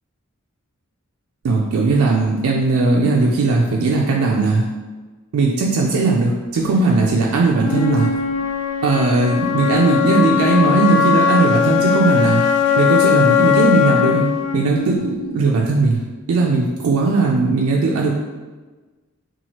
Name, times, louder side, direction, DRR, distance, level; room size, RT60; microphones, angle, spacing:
voice 1, 1.4-4.7 5.3-8.1 8.8-12.4 12.8-14.3 14.5-16.0 16.3-18.1, right 3 dB, 75° right, -2 dB, 0.3 m, -18 dB
Wind instrument woodwind instrument, 7.6-15.6, left 7 dB, 80° left, 0.3 m, -19 dB
2.8 x 2.3 x 2.9 m, 1.3 s
head